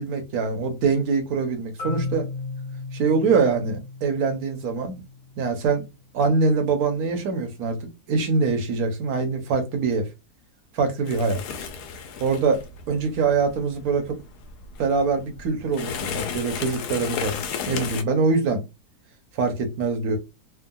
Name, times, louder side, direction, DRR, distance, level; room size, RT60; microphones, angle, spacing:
voice 1, 0.0-2.3 2.9-5.0 5.4-5.8 6.1-7.8 8.1-10.1 10.7-11.4 12.2-12.6 12.9-14.2 14.8-17.4 17.7-18.6 19.3-20.2, right 4 dB, 70° right, 1.3 m, -23 dB
Marimba xylophone, 1.8-5.7, left 4 dB, 60° left, 1.5 m, -35 dB
sound 1, 11.0-18.0, left 6 dB, 85° left, 1.2 m, -34 dB
3.5 x 2.2 x 2.3 m
omnidirectional pair, 1.7 m